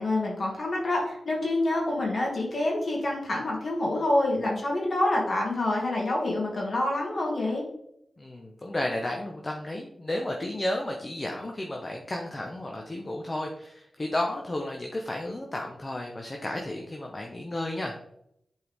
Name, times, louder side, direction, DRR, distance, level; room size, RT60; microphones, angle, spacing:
voice 1, 0.0-7.7, left 2 dB, 55° left, -2 dB, 2.4 m, -27 dB
voice 2, 8.2-18.0, left 1 dB, 35° left, 1 dB, 1.0 m, -33 dB
8.0 x 4.6 x 3.6 m, 0.76 s
cardioid pair, 65°, 0 cm